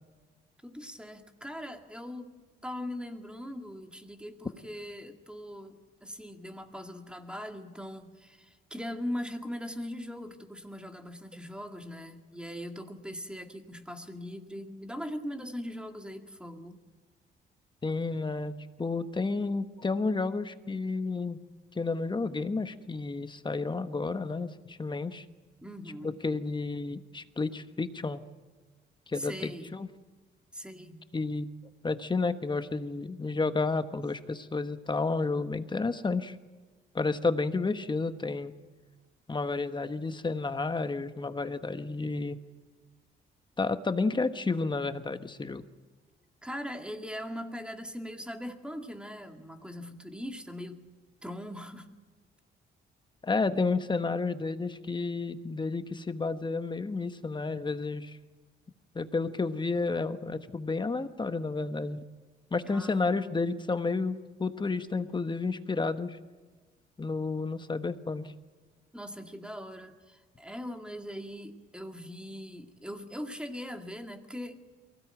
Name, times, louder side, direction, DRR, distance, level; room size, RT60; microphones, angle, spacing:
voice 1, 0.6-2.3 2.6-16.8 25.6-26.2 29.1-29.7 30.5-31.1 33.9-34.0 46.4-50.9 51.2-51.9 62.6-63.4 68.9-74.7, equal, 5° right, 5 dB, 2.2 m, -40 dB
voice 2, 17.8-18.5 18.8-21.4 21.7-25.2 26.0-28.2 29.1-29.9 31.1-31.5 31.8-36.4 36.9-38.5 39.3-42.4 43.6-45.6 53.2-58.2 58.9-62.0 62.5-66.2 67.0-68.3, left 3 dB, 25° left, 10 dB, 1.2 m, -31 dB
23.0 x 17.0 x 9.0 m, 1.3 s
cardioid pair, 90°, 20 cm